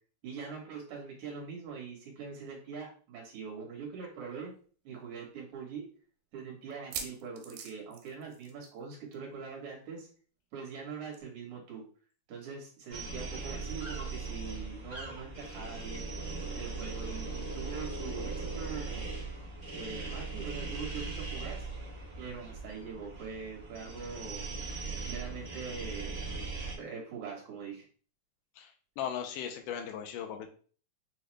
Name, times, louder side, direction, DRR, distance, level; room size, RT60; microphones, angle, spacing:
voice 1, 0.2-4.5 4.8-5.9 6.3-10.1 10.5-11.8 12.3-16.1 16.6-19.1 19.7-21.7 22.2-24.5 25.1-26.2 26.7-27.9, right 5 dB, 60° right, -1 dB, 2.4 m, -43 dB
sound 1, 4.0-4.1 4.4-4.5 5.1-5.2 6.7-8.9 9.1-9.3 9.6-9.7 11.1-11.2, right 7 dB, 85° right, 2.5 m, -43 dB
sound 2, 12.9-26.8, right 3 dB, 35° right, 0.7 m, -39 dB
voice 2, 28.6-30.5, left 8 dB, 80° left, 5 dB, 1.9 m, -38 dB
6.7 x 2.3 x 3.2 m, 0.41 s
omnidirectional pair, 4.3 m